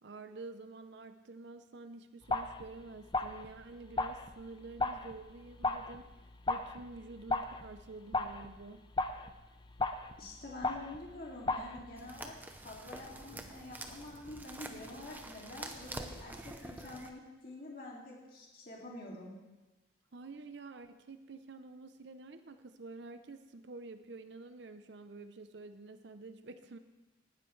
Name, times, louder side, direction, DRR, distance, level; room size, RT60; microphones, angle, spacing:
voice 1, 0.0-6.1 6.5-8.8 20.1-26.8, right 3 dB, 60° right, 9 dB, 0.6 m, -49 dB
sound 1, 2.2-12.2, left 3 dB, 20° left, 0.5 m, -37 dB
voice 2, 10.2-12.3 12.6-19.3, left 2 dB, 45° left, -3 dB, 2.4 m, -47 dB
sound 2, 12.0-17.1, right 1 dB, 10° right, 0.7 m, -47 dB
18.5 x 12.5 x 3.2 m, 1.1 s
head